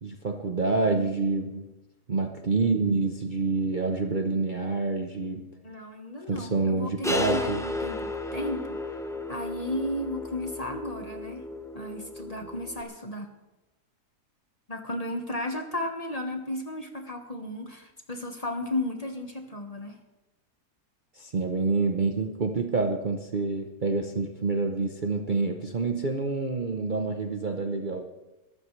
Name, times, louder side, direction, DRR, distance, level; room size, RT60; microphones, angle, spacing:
voice 1, 0.0-1.7 2.1-5.5 6.3-7.6 21.1-28.0, right 3 dB, 40° right, 4 dB, 0.9 m, -27 dB
voice 2, 5.6-8.9 9.3-11.4 11.7-13.3 14.7-20.0, left 1 dB, 25° left, 4 dB, 1.3 m, -34 dB
sound 1, 7.0-12.8, left 2 dB, 5° left, 0.4 m, -34 dB
22.0 x 13.5 x 3.3 m, 1.0 s
omnidirectional pair, 1.7 m